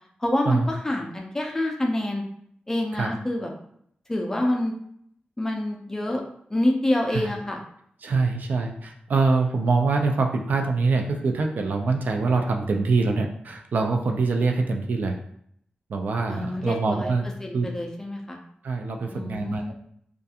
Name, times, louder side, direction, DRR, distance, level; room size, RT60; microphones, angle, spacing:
voice 1, 0.2-2.2 2.7-3.5 4.1-4.7 5.4-6.2 6.5-7.6 16.3-17.1 17.4-18.4 19.1-19.7, left 1 dB, 15° left, 1 dB, 0.4 m, -27 dB
voice 2, 8.0-15.1 15.9-17.2 17.5-17.7 18.6-19.6, right 3 dB, 60° right, 3 dB, 0.3 m, -24 dB
2.4 x 2.3 x 2.7 m, 0.68 s
wide cardioid pair, 150°, 3 cm